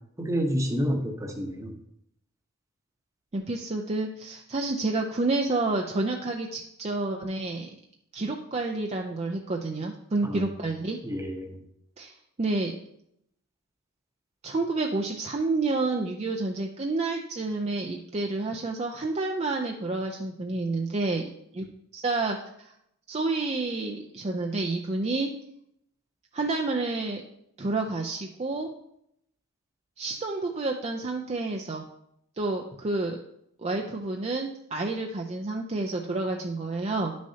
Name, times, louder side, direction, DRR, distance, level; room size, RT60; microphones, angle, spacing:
voice 1, 0.2-1.7 10.2-10.4 11.0-11.6, equal, 15° right, 4 dB, 0.9 m, -29 dB
voice 2, 3.3-7.7 8.1-11.0 12.0-12.7 14.4-21.6 21.9-22.7 23.1-25.3 26.3-27.2 27.6-28.7 30.0-31.8 32.4-33.2 33.6-37.2, right 3 dB, 30° right, 2 dB, 0.5 m, -29 dB
10.5 x 6.3 x 2.8 m, 0.77 s
head